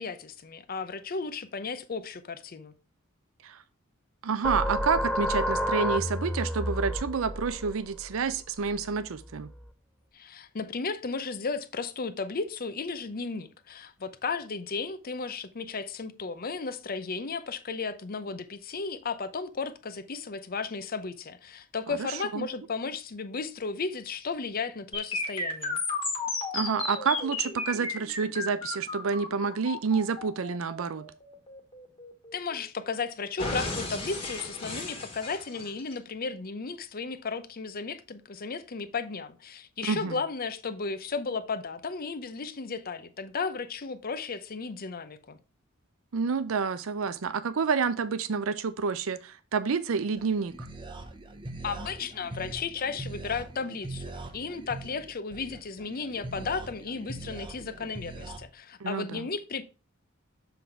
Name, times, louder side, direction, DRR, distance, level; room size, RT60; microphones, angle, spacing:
voice 1, 0.0-2.7 10.1-25.8 32.3-45.4 51.6-59.6, left 4 dB, 45° left, 0.7 m, -34 dB
voice 2, 4.2-9.5 21.9-22.5 26.5-31.0 39.8-40.2 46.1-50.7 58.8-59.3, right 5 dB, 80° right, 0.5 m, -29 dB
sound 1, 4.4-9.7, equal, ahead, 0.4 m, -31 dB
sound 2, 24.9-32.9 33.4-35.9, left 3 dB, 25° left, 1.7 m, -34 dB
sound 3, 50.2-58.4, right 2 dB, 25° right, 0.8 m, -42 dB
7.0 x 3.9 x 4.5 m
head